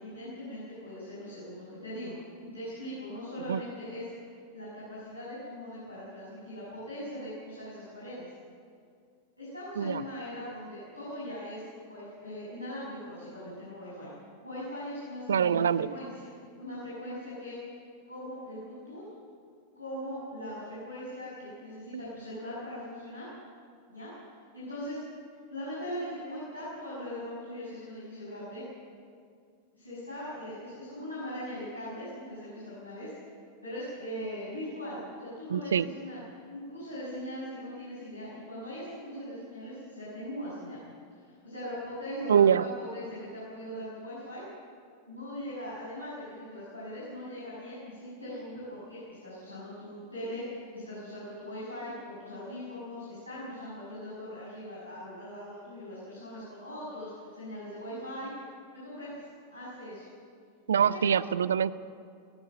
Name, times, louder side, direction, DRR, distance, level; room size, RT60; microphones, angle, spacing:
voice 1, 0.0-2.2 2.5-4.0 4.5-8.3 9.4-14.1 14.4-16.3 16.6-17.6 18.1-19.0 19.8-23.3 23.9-24.1 24.5-25.0 25.5-28.7 29.7-33.1 33.6-36.2 36.5-40.9 41.2-44.4 45.1-58.3 58.7-60.0 60.8-61.2, equal, 85° left, -10 dB, 7.2 m, -40 dB
voice 2, 15.3-16.0 35.5-35.9 42.3-42.6 60.7-61.7, right 8 dB, 65° right, 18 dB, 0.5 m, -24 dB
18.5 x 18.0 x 7.8 m, 2.2 s
figure-of-eight pair, 90°, 0 cm